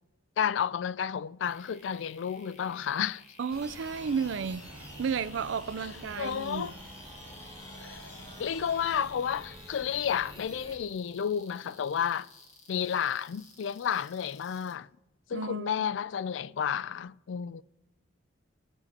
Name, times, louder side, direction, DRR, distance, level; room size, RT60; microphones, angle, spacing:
voice 1, 0.4-3.2 6.2-6.7 7.9-8.0 8.4-12.3 12.7-14.9 15.3-17.6, left 8 dB, 80° left, 0.4 m, -31 dB
sound 1, 1.4-14.7, left 3 dB, 40° left, 1.6 m, -54 dB
voice 2, 3.4-6.7 15.3-15.7, right 6 dB, 80° right, 0.4 m, -33 dB
sound 2, 3.5-10.8, equal, 20° left, 4.0 m, -47 dB
21.0 x 7.3 x 4.2 m
head